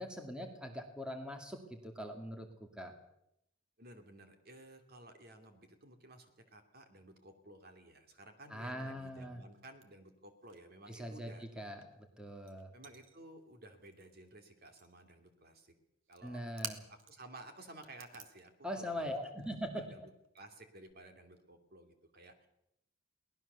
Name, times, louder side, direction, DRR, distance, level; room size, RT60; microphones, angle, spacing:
voice 1, 0.0-2.5 2.8-2.9 8.5-9.4 10.9-12.7 16.2-16.8 18.6-19.8, equal, 5° right, 4 dB, 2.2 m, -42 dB
voice 2, 3.8-11.4 12.7-15.7 16.1-19.2 19.5-22.5, right 2 dB, 50° right, 6 dB, 2.7 m, -55 dB
sound 1, 9.5-10.6 10.9-14.4 14.6-15.1 16.0-17.3 17.6-20.9, right 6 dB, 75° right, 2.1 m, -52 dB
23.0 x 18.5 x 6.9 m, 0.81 s
head